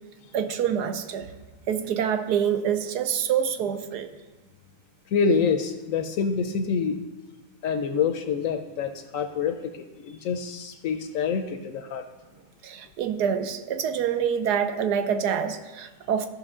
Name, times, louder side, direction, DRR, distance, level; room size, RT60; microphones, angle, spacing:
voice 1, 0.3-1.3 1.7-4.1 12.6-16.3, right 8 dB, 80° right, 8 dB, 1.2 m, -26 dB
voice 2, 5.1-7.0 7.6-12.1, left 5 dB, 70° left, 8 dB, 0.9 m, -26 dB
13.5 x 5.6 x 3.6 m, 1.2 s
omnidirectional pair, 1.7 m